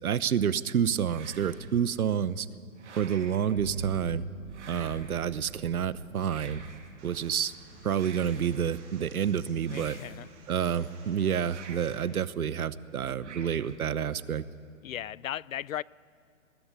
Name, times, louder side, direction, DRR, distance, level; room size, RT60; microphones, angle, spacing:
voice 1, 0.0-2.5 3.0-4.2 4.7-6.6 7.0-7.5 7.8-10.0 10.5-14.4, right 8 dB, 85° right, 1.0 m, -29 dB
sound 1, 1.1-1.9 2.8-3.5 4.5-5.3 6.2-7.0 7.9-8.7 9.6-10.5 11.4-12.1 13.2-13.9, right 5 dB, 55° right, 2.7 m, -48 dB
Bowed string instrument, 3.5-9.2, right 3 dB, 35° right, 6.2 m, -44 dB
sound 2, 7.0-12.0, right 3 dB, 15° right, 2.9 m, -55 dB
voice 2, 9.7-10.3 14.8-15.8, left 11 dB, 70° left, 0.5 m, -36 dB
21.0 x 15.0 x 9.8 m
hypercardioid pair, 175°, 42 cm